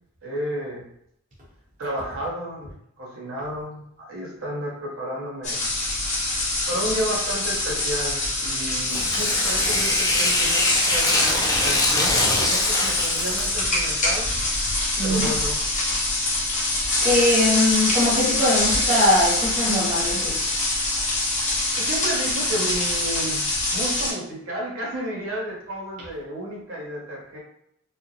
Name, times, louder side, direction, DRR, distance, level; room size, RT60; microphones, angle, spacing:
voice 1, 0.2-0.9 1.8-2.7 3.0-5.6 6.7-14.3 15.0-15.6 21.7-23.4 23.7-27.4, right 1 dB, 60° right, 1.4 m, -32 dB
sound 1, 5.4-24.1, left 2 dB, 35° left, 1.2 m, -24 dB
Tearing, 8.8-13.6, left 2 dB, 15° left, 0.4 m, -24 dB
voice 2, 15.0-15.4 17.0-20.4, left 1 dB, 35° right, 1.0 m, -21 dB
4.8 x 2.1 x 3.3 m
head